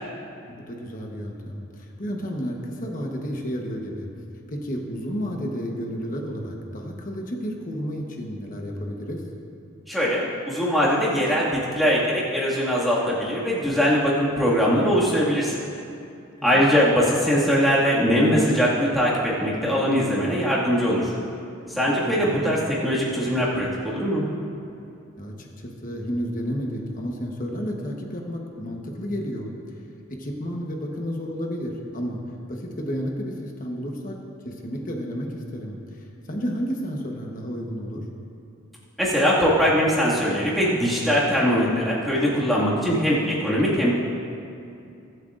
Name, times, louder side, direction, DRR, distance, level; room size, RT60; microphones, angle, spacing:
voice 1, 0.5-4.1 4.5-9.2 16.5-16.7 21.8-22.2 25.2-29.5 30.1-32.2 32.5-34.2 34.4-38.0, equal, 40° left, 1 dB, 1.1 m, -31 dB
voice 2, 9.9-15.6 16.4-21.1 21.7-24.3 39.0-43.9, equal, ahead, -8 dB, 2.0 m, -21 dB
22.5 x 7.8 x 2.5 m, 2.6 s
head